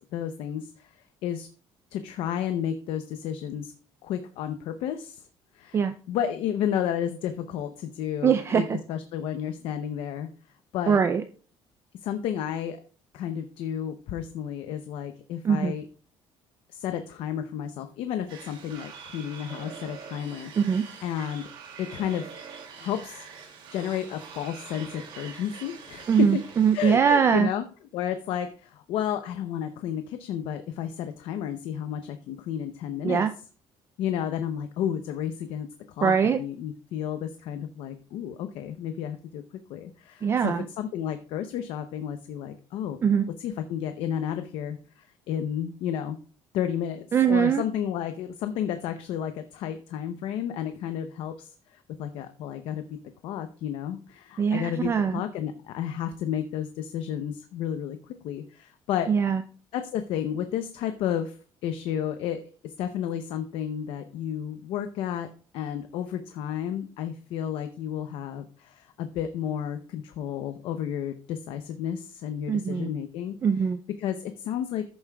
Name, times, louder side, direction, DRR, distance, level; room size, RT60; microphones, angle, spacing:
voice 1, 0.1-1.5 1.9-3.7 4.0-5.3 5.5-10.3 10.7-11.0 12.0-12.8 13.1-15.9 16.7-21.5 21.8-22.3 22.8-23.3 23.7-26.4 26.7-27.6 27.9-33.2 34.0-39.4 39.7-43.0 43.4-46.2 46.5-53.0 53.2-58.0 58.2-59.1 59.7-61.4 61.6-65.3 65.5-73.4 74.0-74.8, left 9 dB, 75° left, 8 dB, 0.6 m, -32 dB
voice 2, 8.2-8.8 10.9-11.2 15.4-15.7 20.6-20.8 26.1-27.5 33.0-33.3 36.0-36.4 40.2-40.7 43.0-43.3 47.1-47.6 54.4-55.2 59.1-59.4 72.5-72.9 73.4-73.8, right 7 dB, 30° right, 9 dB, 0.4 m, -22 dB
sound 1, 18.3-27.0, right 6 dB, 65° right, 2.4 m, -44 dB
14.0 x 7.2 x 2.3 m, 0.40 s
cardioid pair, 160°, 9 cm